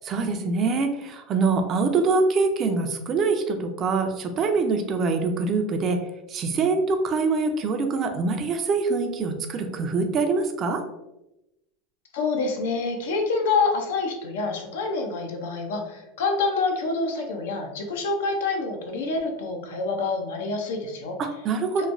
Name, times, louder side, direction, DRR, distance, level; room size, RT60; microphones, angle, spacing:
voice 1, 0.1-6.0 6.3-10.8 21.2-21.9, right 4 dB, 35° right, 5 dB, 0.4 m, -24 dB
voice 2, 12.1-21.2 21.8-21.9, left 3 dB, 85° left, 3 dB, 0.5 m, -27 dB
3.0 x 2.1 x 2.5 m, 0.92 s
supercardioid pair, 125°, 0 cm